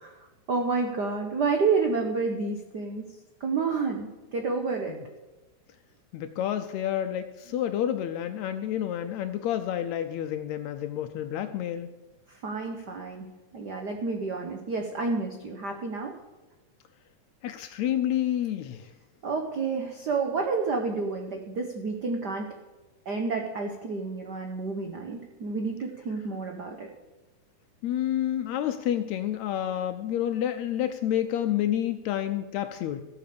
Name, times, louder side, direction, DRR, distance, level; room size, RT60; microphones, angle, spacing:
voice 1, 0.0-3.1 3.4-5.0 12.3-16.1 19.2-22.5 23.0-26.9, right 4 dB, 70° right, 3 dB, 1.0 m, -30 dB
voice 2, 6.1-11.9 17.4-18.9 27.8-33.0, left 11 dB, 75° left, 9 dB, 1.8 m, -29 dB
14.0 x 8.6 x 6.8 m, 1.1 s
omnidirectional pair, 3.4 m